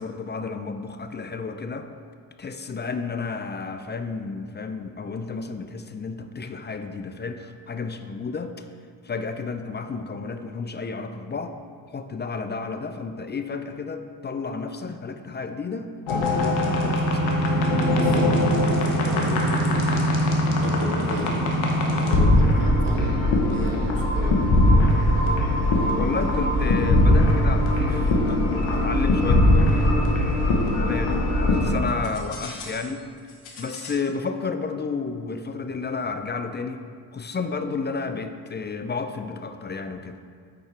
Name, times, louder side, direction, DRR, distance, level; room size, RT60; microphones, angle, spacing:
voice 1, 0.0-1.9 2.4-8.7 9.0-11.5 11.9-17.4 26.0-28.4 28.7-29.9 30.9-33.0 33.6-36.8 37.1-40.2, left 4 dB, 25° left, 8 dB, 0.4 m, -31 dB
sound 1, 16.1-31.7 32.0-32.8 33.5-33.9, left 1 dB, 70° left, 1.3 m, -21 dB
voice 2, 17.9-18.4 18.7-20.0 20.6-21.5 21.8-24.4, right 1 dB, 45° right, 0 dB, 1.5 m, -34 dB
9.5 x 4.2 x 3.4 m, 2.1 s
supercardioid pair, 55°, 48 cm